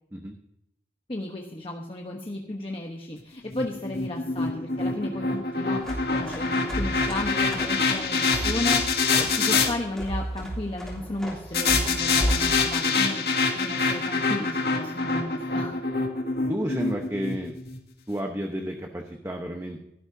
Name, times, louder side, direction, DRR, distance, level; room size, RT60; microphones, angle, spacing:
voice 1, 1.1-15.8, left 1 dB, 30° left, 1 dB, 1.0 m, -34 dB
sound 1, 3.5-9.7 11.5-17.8, left 4 dB, 65° left, 2.0 m, -25 dB
sound 2, 5.7-12.5, equal, ahead, 3.3 m, -32 dB
voice 2, 16.5-17.5 18.1-19.8, equal, 15° right, 2 dB, 1.0 m, -31 dB
17.0 x 12.5 x 2.7 m, 0.84 s
head